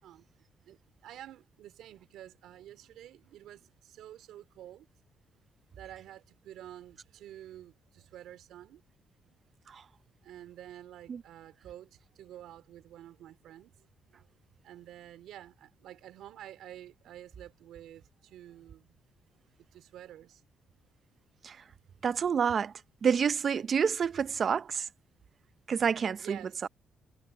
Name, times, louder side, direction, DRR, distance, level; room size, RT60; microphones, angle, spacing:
voice 1, 0.6-4.9 5.7-8.8 9.3-9.4 10.2-14.3 14.6-18.9 19.3-19.4 19.7-20.4 26.2-26.7, right 12 dB, 80° right, 3.0 m, -49 dB
voice 2, 22.0-22.7 23.0-24.8 25.7-26.4 26.6-26.7, right 7 dB, 50° right, 0.6 m, -28 dB
cardioid pair, 90°, 0 cm